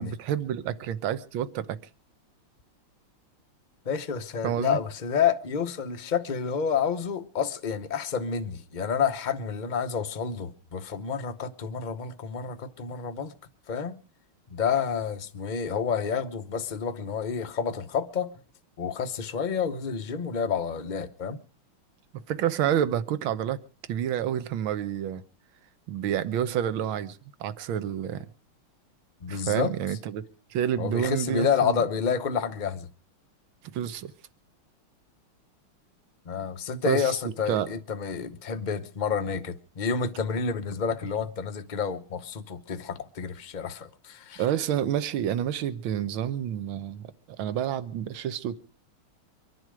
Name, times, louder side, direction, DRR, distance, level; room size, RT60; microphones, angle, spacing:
voice 1, 0.0-1.8 4.4-4.8 22.1-23.6 23.9-25.2 25.9-28.3 29.3-30.2 30.5-31.8 33.6-34.1 36.9-37.0 37.5-37.7 44.4-48.6, right 10 dB, 70° right, 1.7 m, -29 dB
voice 2, 3.8-13.3 13.7-13.9 14.5-18.3 18.8-21.4 29.2-29.7 30.8-32.9 36.3-44.4, left 6 dB, 45° left, 0.6 m, -29 dB
24.5 x 11.0 x 4.9 m
omnidirectional pair, 2.4 m